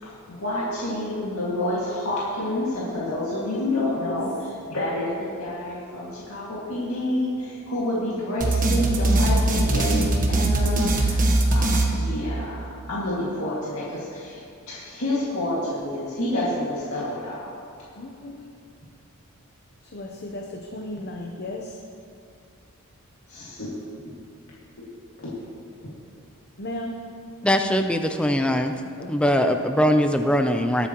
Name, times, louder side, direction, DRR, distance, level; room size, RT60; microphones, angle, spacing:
voice 1, 0.0-14.4 14.7-17.5 23.3-23.7 24.8-24.9 25.2-25.3, left 1 dB, 70° left, -8 dB, 2.2 m, -28 dB
voice 2, 3.5-4.0 18.0-18.4 19.9-21.7 26.6-27.0 29.0-29.1, left 1 dB, 50° left, 0 dB, 0.8 m, -35 dB
sound 1, 8.4-12.7, right 2 dB, 40° right, 1.2 m, -21 dB
voice 3, 27.4-28.7 29.1-30.9, equal, 5° left, 6 dB, 0.6 m, -21 dB
19.5 x 8.4 x 3.1 m, 2.3 s
head